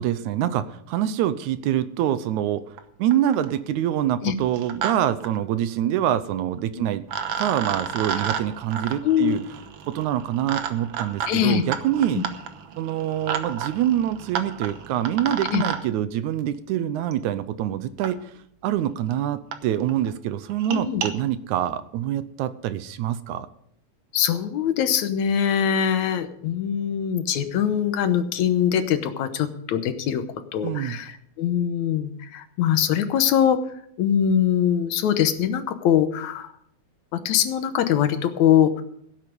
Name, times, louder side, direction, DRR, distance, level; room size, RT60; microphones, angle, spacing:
voice 1, 0.0-7.0 7.4-9.4 9.9-12.2 12.8-18.3 18.6-23.5 30.6-31.0, right 11 dB, 80° right, 14 dB, 2.0 m, -25 dB
sound 1, 2.8-2.9 3.1-3.6 4.4-4.9 5.2-5.3 6.6-6.7 7.1-15.8 17.1-17.2 18.0-18.1 18.8-18.9 19.1-19.2 19.5-19.6 19.9-20.1 20.5-21.1, right 8 dB, 60° right, 1.7 m, -31 dB
voice 2, 9.0-9.4 11.3-11.6 12.2-12.3 15.5-15.6 20.7-21.0 24.1-30.2 30.5-33.6 34.0-36.5 37.1-38.7, left 9 dB, 70° left, 9 dB, 2.2 m, -22 dB
17.0 x 8.3 x 5.2 m, 0.68 s
omnidirectional pair, 3.5 m